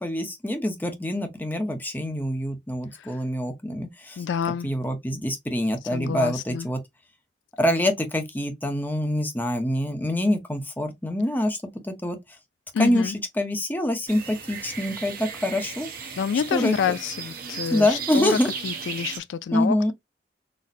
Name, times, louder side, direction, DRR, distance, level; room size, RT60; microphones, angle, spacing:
voice 1, 0.0-4.2 4.6-6.8 7.6-11.6 11.8-12.2 12.8-15.9 16.5-16.7 17.7-18.5 19.5-19.9, left 1 dB, 10° left, 0.7 m, -25 dB
voice 2, 4.2-4.7 5.9-6.7 12.7-13.2 16.2-18.4 18.6-19.9, left 7 dB, 90° left, 0.3 m, -27 dB
sound 1, 14.1-19.2, right 6 dB, 55° right, 0.9 m, -36 dB
4.1 x 2.1 x 2.6 m
head